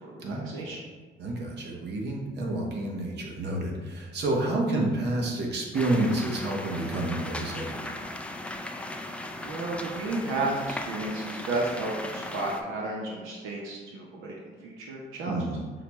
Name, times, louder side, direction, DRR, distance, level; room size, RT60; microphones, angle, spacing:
voice 1, 0.1-0.8 9.4-15.4, right 2 dB, 85° right, -2 dB, 0.7 m, -33 dB
voice 2, 1.2-7.9 15.3-15.6, right 2 dB, 60° right, 0 dB, 0.9 m, -29 dB
sound 1, 5.7-12.6, left 1 dB, 5° left, 0.3 m, -37 dB
5.7 x 2.2 x 3.0 m, 1.4 s
cardioid pair, 90°, 20 cm